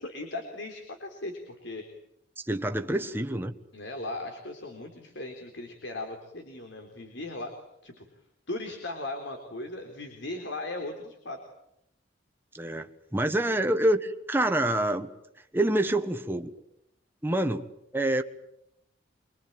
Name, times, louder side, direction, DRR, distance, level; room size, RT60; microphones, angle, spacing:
voice 1, 0.0-1.9 3.7-7.5 7.8-8.0 8.5-11.4, left 2 dB, 80° left, 4 dB, 3.7 m, -38 dB
voice 2, 2.4-3.5 12.5-15.1 15.5-16.5 17.2-17.7 17.9-18.2, right 1 dB, 10° right, 7 dB, 1.3 m, -27 dB
25.5 x 23.5 x 9.0 m, 0.79 s
head